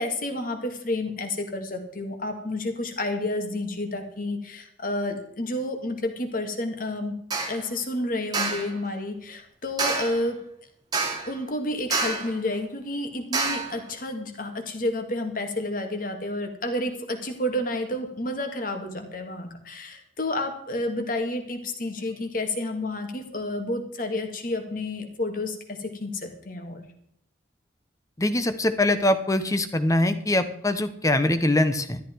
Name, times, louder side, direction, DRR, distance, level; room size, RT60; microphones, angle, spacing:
voice 1, 0.0-7.2 7.5-10.4 11.3-26.9, left 1 dB, 45° left, 5 dB, 2.1 m, -30 dB
sound 1, 7.3-7.6 8.3-8.7 9.8-10.2 10.9-11.4 11.9-12.4 13.3-13.8, right 3 dB, 20° right, 1.8 m, -27 dB
voice 2, 28.2-32.0, left 1 dB, 15° left, 10 dB, 0.9 m, -23 dB
13.0 x 12.0 x 4.6 m, 0.69 s
head